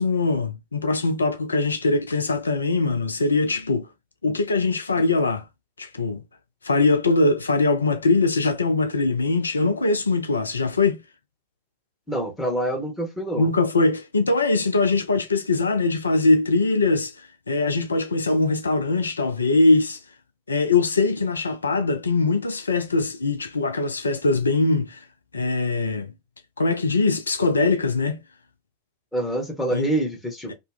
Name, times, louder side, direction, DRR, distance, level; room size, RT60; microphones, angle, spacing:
voice 1, 0.0-3.9 4.2-5.4 5.8-6.2 6.6-11.0 13.4-20.0 20.5-25.0 25.3-26.1 26.6-28.2 29.7-29.9, left 3 dB, 75° left, 0.3 m, -22 dB
voice 2, 12.1-13.5 29.1-30.5, right 1 dB, 10° left, 1.2 m, -26 dB
2.8 x 2.0 x 3.4 m
figure-of-eight pair, 90°, 0 cm